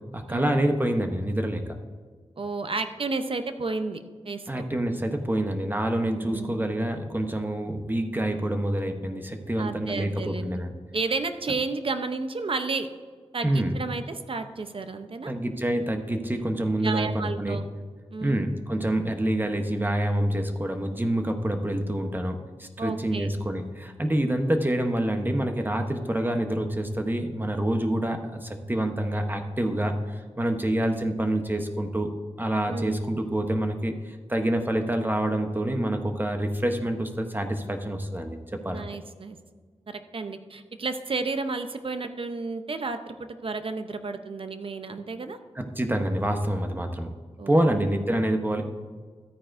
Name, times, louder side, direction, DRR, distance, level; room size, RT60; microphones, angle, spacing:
voice 1, 0.1-1.7 4.5-10.7 13.4-13.7 15.3-17.6 18.2-38.9 45.6-47.1 47.5-48.6, right 1 dB, 20° right, 5 dB, 0.9 m, -27 dB
voice 2, 2.4-4.6 6.2-6.7 9.6-10.7 10.9-12.9 13.3-15.3 16.8-17.6 18.1-18.4 22.8-23.3 32.7-33.0 38.7-39.4 39.9-45.4 47.4-47.8, right 3 dB, 55° right, 8 dB, 0.7 m, -32 dB
13.0 x 9.1 x 2.6 m, 1.5 s
wide cardioid pair, 85°, 11 cm